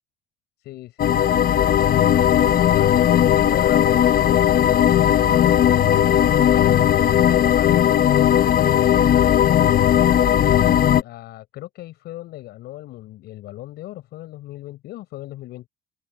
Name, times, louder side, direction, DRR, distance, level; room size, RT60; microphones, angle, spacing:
voice 1, 0.6-1.3 1.6-5.6 6.0-9.9 10.3-10.6 11.0-15.7, left 16 dB, 80° left, 6.0 m, -37 dB
sound 1, 1.0-11.0, left 10 dB, 60° left, 1.2 m, -17 dB
cardioid pair, 110°, 17 cm